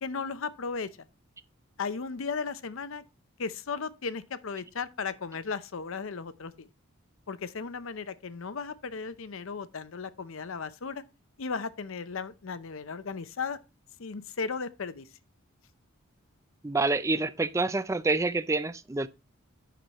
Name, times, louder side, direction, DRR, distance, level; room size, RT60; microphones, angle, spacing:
voice 1, 0.0-0.9 1.8-3.0 3.4-6.7 7.3-11.0 11.4-13.6 14.0-15.1, left 5 dB, 65° left, 0.6 m, -35 dB
voice 2, 16.6-19.1, right 3 dB, 15° right, 0.3 m, -27 dB
9.1 x 6.1 x 3.0 m
head